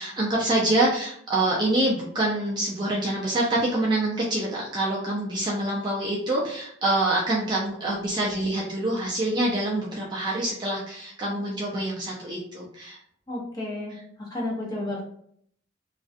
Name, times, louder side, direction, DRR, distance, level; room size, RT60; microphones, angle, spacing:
voice 1, 0.0-13.0, right 1 dB, 25° right, -4 dB, 0.4 m, -26 dB
voice 2, 13.3-15.0, left 1 dB, 20° left, -5 dB, 0.8 m, -32 dB
2.4 x 2.2 x 2.5 m, 0.66 s
head